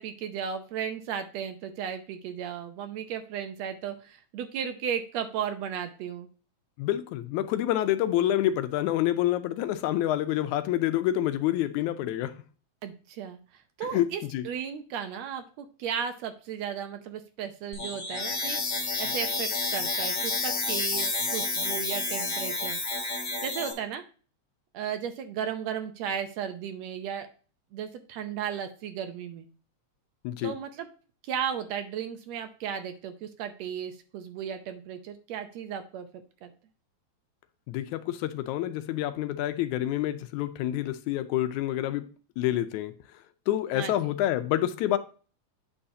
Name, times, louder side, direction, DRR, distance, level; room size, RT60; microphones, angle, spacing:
voice 1, 0.0-6.3 12.8-13.4 13.8-18.6 19.0-22.8 23.4-24.0 24.7-27.3 27.7-29.5 30.4-30.9 31.2-36.1 36.4-36.5 43.7-43.9, right 8 dB, 75° right, 1.8 m, -35 dB
voice 2, 6.8-12.3 13.9-14.1 14.3-14.4 30.2-30.5 37.7-42.1 42.4-42.9 43.5-45.0, left 13 dB, 85° left, 2.1 m, -27 dB
sound 1, 17.7-23.7, left 3 dB, 40° left, 2.1 m, -30 dB
8.7 x 5.6 x 2.7 m
omnidirectional pair, 3.4 m